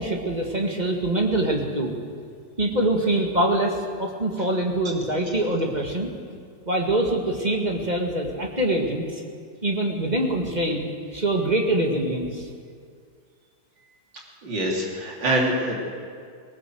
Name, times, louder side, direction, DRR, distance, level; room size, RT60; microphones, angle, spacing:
voice 1, 0.0-2.0 2.6-6.1 6.7-9.2 9.6-10.8 11.1-12.5, right 1 dB, 25° right, 1 dB, 2.0 m, -24 dB
voice 2, 14.4-15.8, right 1 dB, 75° right, -2 dB, 4.0 m, -24 dB
19.0 x 18.5 x 7.9 m, 2.1 s
omnidirectional pair, 2.0 m